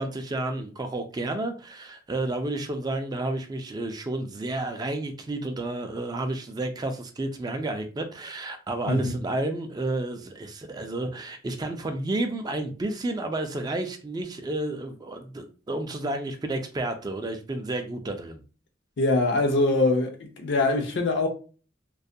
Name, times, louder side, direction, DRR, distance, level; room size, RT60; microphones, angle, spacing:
voice 1, 0.0-18.4, right 2 dB, 20° right, 0.3 m, -31 dB
voice 2, 19.0-21.3, left 2 dB, 65° left, 0.5 m, -23 dB
2.3 x 2.1 x 2.6 m
head